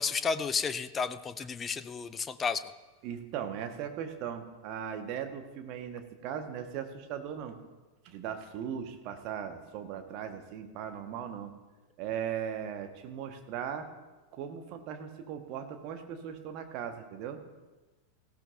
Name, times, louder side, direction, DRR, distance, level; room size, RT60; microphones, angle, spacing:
voice 1, 0.0-2.6, left 5 dB, 20° left, 13 dB, 0.6 m, -32 dB
voice 2, 3.0-7.6 8.0-11.5 12.0-13.9 14.3-17.4, right 8 dB, 40° right, 6 dB, 1.4 m, -38 dB
18.0 x 15.5 x 2.7 m, 1.2 s
figure-of-eight pair, 90°, 0 cm